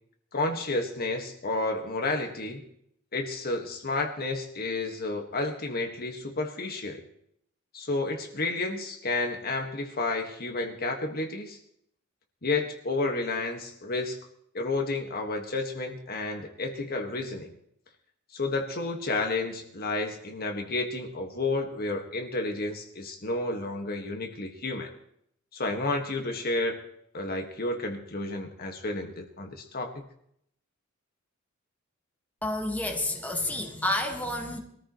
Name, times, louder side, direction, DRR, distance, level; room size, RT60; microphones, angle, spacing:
voice 1, 0.3-2.7 3.1-7.0 7.7-11.6 12.4-14.2 14.5-17.5 18.3-24.9 25.5-26.8 27.1-30.1, left 2 dB, 45° left, 4 dB, 1.7 m, -31 dB
voice 2, 32.4-34.6, left 1 dB, 10° left, 2 dB, 1.6 m, -30 dB
23.0 x 14.0 x 3.1 m, 0.70 s
head